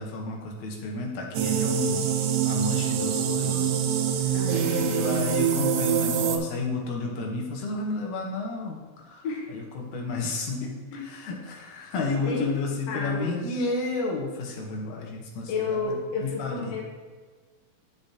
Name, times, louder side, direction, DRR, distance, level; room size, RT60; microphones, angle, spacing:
voice 1, 0.0-2.2 2.4-3.7 4.2-16.8, left 3 dB, 90° left, 0 dB, 2.5 m, -32 dB
sound 1, 1.3-6.4, right 8 dB, 90° right, 1.2 m, -25 dB
voice 2, 4.3-5.4 9.2-9.5 10.6-11.1 12.2-12.5 12.9-13.5 15.5-16.8, left 4 dB, 65° left, -2 dB, 2.2 m, -32 dB
9.7 x 7.0 x 2.8 m, 1.4 s
omnidirectional pair, 3.3 m